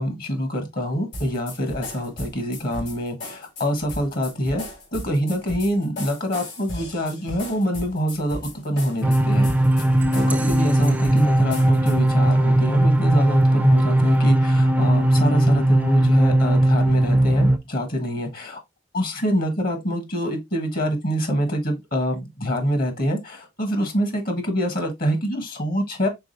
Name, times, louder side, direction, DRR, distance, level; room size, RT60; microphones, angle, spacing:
voice 1, 0.0-4.6 4.9-9.5 10.1-18.6 18.9-26.1, equal, 55° left, 1.2 m, -25 dB
sound 1, 1.1-12.1, left 1 dB, 80° left, 2.0 m, -37 dB
sound 2, 9.0-17.6, right 1 dB, 10° right, 0.3 m, -18 dB
4.7 x 3.6 x 2.6 m
head